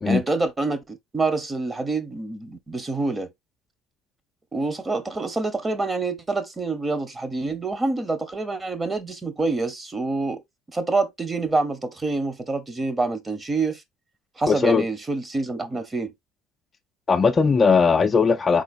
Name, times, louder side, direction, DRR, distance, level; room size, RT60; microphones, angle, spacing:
voice 1, 0.0-3.3 4.5-10.4 10.7-13.8 14.4-16.1, right 3 dB, 20° right, 1.1 m, -26 dB
voice 2, 14.5-14.8 17.1-18.6, left 5 dB, 30° left, 0.5 m, -18 dB
4.2 x 3.9 x 2.5 m
hypercardioid pair, 75°, 0 cm